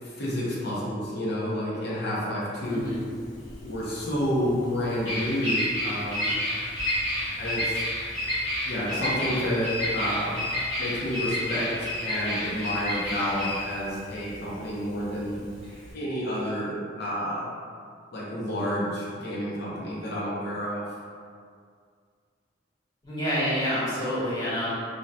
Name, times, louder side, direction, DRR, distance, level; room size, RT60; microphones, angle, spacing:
voice 1, 0.0-2.9 3.6-6.4 7.4-7.8 8.6-10.4 10.8-15.4 15.9-17.5 18.1-20.8, equal, 60° left, -6 dB, 0.6 m, -30 dB
Bird vocalization bird call bird song, 2.6-15.9, left 1 dB, 80° left, 1.0 m, -30 dB
voice 2, 2.7-3.0 23.0-24.7, equal, 25° left, -12 dB, 1.0 m, -28 dB
2.6 x 2.2 x 2.2 m, 2.2 s
head